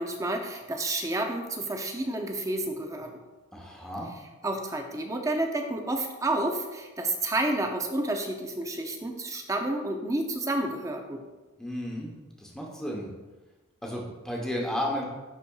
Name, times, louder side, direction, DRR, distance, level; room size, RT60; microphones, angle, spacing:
voice 1, 0.0-3.1 4.4-11.2, right 2 dB, 15° right, 3 dB, 0.5 m, -30 dB
voice 2, 3.5-4.1 11.6-12.1 12.4-13.1 13.8-15.0, left 1 dB, 5° left, -2 dB, 0.9 m, -33 dB
9.9 x 4.1 x 2.3 m, 1.2 s
head